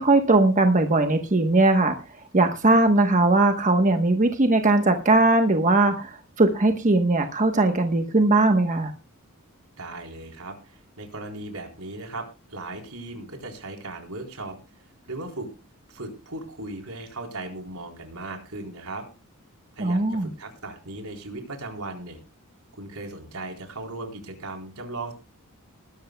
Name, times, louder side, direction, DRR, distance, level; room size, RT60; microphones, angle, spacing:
voice 1, 0.0-1.9 2.3-8.9 19.8-20.3, right 2 dB, 35° right, 5 dB, 1.1 m, -20 dB
voice 2, 9.8-14.6 15.1-15.5 15.9-19.1 19.8-22.2 22.7-25.1, right 2 dB, 85° right, 3 dB, 3.9 m, -37 dB
20.5 x 12.0 x 2.3 m, 0.31 s
head